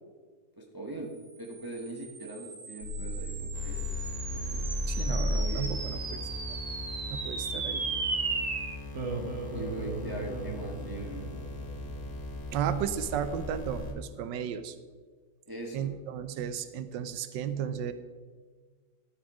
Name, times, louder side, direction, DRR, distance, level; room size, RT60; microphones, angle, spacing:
voice 1, 0.6-1.1 1.4-3.8 4.3-4.6 5.3-5.8 9.5-11.3 15.5-15.9, right 2 dB, 15° right, -1 dB, 1.1 m, -40 dB
sound 1, 1.5-12.1, right 4 dB, 45° right, 1.3 m, -37 dB
sound 2, 2.8-13.9, left 1 dB, 50° left, 2.0 m, -37 dB
sound 3, 3.5-13.9, left 3 dB, 85° left, 2.1 m, -43 dB
voice 2, 4.9-6.2 7.1-7.8 12.5-14.7 15.7-17.9, right 8 dB, 80° right, 11 dB, 1.3 m, -34 dB
12.5 x 6.3 x 4.9 m, 1.5 s
omnidirectional pair, 1.9 m